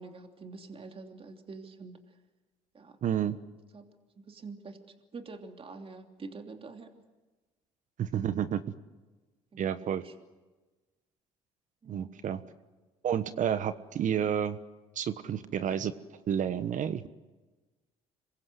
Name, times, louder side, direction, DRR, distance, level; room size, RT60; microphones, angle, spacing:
voice 1, 0.0-2.2 2.7-3.0 3.7-3.9 4.2-4.8 5.1-6.9 9.5-10.1 11.8-12.2, right 4 dB, 40° right, 5 dB, 3.1 m, -46 dB
voice 2, 3.0-3.4 8.0-8.6 9.6-10.0 11.9-12.4 13.0-14.6 14.9-15.9 16.3-17.1, right 9 dB, 55° right, 12 dB, 1.3 m, -30 dB
27.0 x 23.0 x 8.1 m, 1.2 s
supercardioid pair, 65°, 15 cm